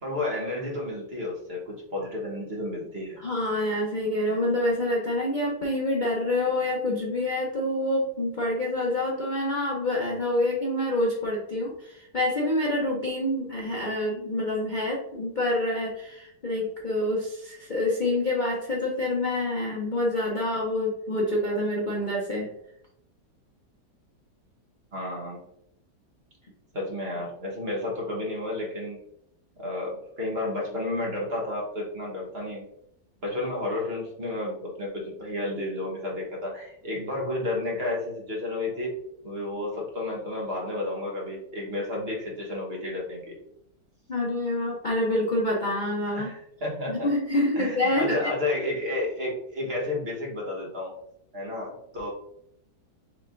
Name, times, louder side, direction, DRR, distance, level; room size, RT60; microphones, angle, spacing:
voice 1, 0.0-3.2 24.9-25.4 26.7-29.0 29.6-32.7 33.2-38.9 39.2-43.3 46.1-47.1 47.5-50.9 51.3-52.1, left 2 dB, 40° right, -2 dB, 1.2 m, -31 dB
voice 2, 3.2-22.5 44.1-46.3 46.9-48.2, left 1 dB, 70° left, -3 dB, 0.4 m, -27 dB
6.4 x 3.3 x 2.5 m, 0.75 s
omnidirectional pair, 2.0 m